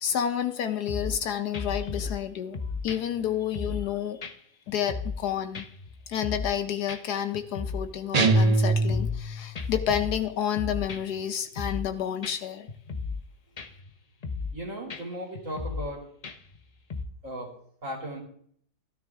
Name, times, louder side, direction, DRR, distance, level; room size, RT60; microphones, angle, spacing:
voice 1, 0.0-2.6 2.8-4.2 4.7-5.7 6.1-12.7, left 9 dB, 70° left, 8 dB, 1.2 m, -30 dB
sound 1, 0.9-1.2 1.5-2.2 2.5-3.9 4.2-4.3 4.7-5.3 5.5-6.6 6.9-7.0 7.3-7.9 8.2-9.3 9.6-11.2 11.6-11.9 12.2-12.3 12.7-13.3 13.6-13.9 14.2-14.6 14.9-15.0 15.4-15.9 16.2-16.6 16.9-17.1, left 4 dB, 45° left, 0.5 m, -35 dB
sound 2, 8.1-9.5, right 2 dB, 70° right, 0.3 m, -22 dB
voice 2, 14.5-16.1 17.2-17.5 17.8-18.2, equal, 45° right, 0 dB, 3.1 m, -36 dB
13.0 x 13.0 x 3.5 m, 0.62 s
omnidirectional pair, 1.9 m